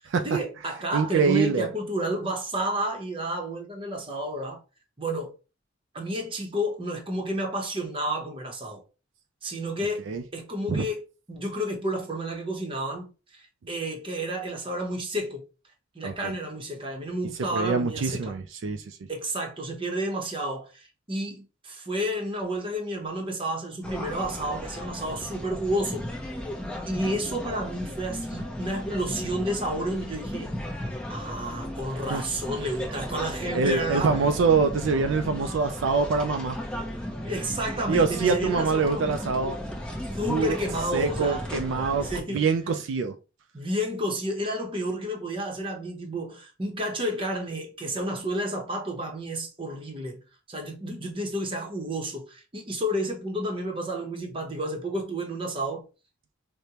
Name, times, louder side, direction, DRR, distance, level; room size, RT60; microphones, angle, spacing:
voice 1, 0.2-4.6 5.0-5.3 5.9-8.8 9.4-10.0 10.3-15.4 15.9-18.4 19.1-26.1 26.9-30.5 31.1-34.2 37.2-39.1 40.1-41.4 42.0-42.5 43.5-50.2 50.5-55.8, right 1 dB, 25° right, 0.8 m, -31 dB
voice 2, 0.9-1.7 10.1-10.2 10.7-10.9 16.0-16.3 17.5-19.0 32.1-32.2 33.5-36.6 37.9-39.6 40.3-40.6 40.9-43.2, right 5 dB, 75° right, 0.4 m, -25 dB
sound 1, 23.8-42.2, left 1 dB, 5° left, 0.6 m, -35 dB
5.0 x 2.1 x 2.8 m
head